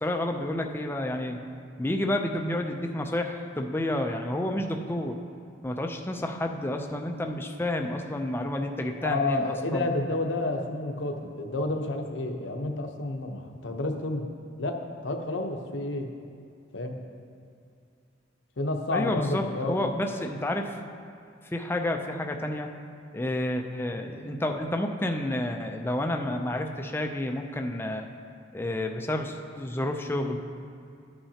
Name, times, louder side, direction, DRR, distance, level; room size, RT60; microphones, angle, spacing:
voice 1, 0.0-1.4 1.8-5.2 5.6-9.9 18.9-20.7 21.4-22.7 23.1-28.1 28.5-30.4, left 1 dB, 10° left, 3 dB, 0.5 m, -30 dB
voice 2, 9.0-14.3 14.6-16.1 16.7-17.0 18.6-19.9, left 2 dB, 70° left, 4 dB, 0.9 m, -30 dB
13.5 x 8.9 x 2.8 m, 2.4 s
head